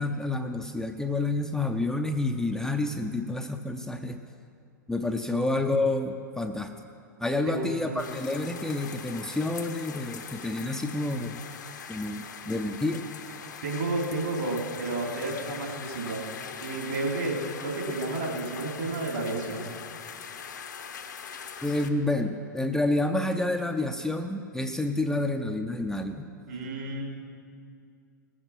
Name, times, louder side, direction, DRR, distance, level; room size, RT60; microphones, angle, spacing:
voice 1, 0.0-4.2 4.9-6.7 7.2-11.4 11.9-13.1 21.6-26.3, left 2 dB, 5° left, 4 dB, 0.6 m, -29 dB
voice 2, 7.5-8.1 13.6-16.2 16.6-19.7 26.5-27.0, right 2 dB, 65° right, -1 dB, 3.5 m, -31 dB
sound 1, 8.0-21.9, left 7 dB, 70° left, 1.1 m, -41 dB
19.0 x 8.0 x 6.1 m, 2.4 s
figure-of-eight pair, 100°, 10 cm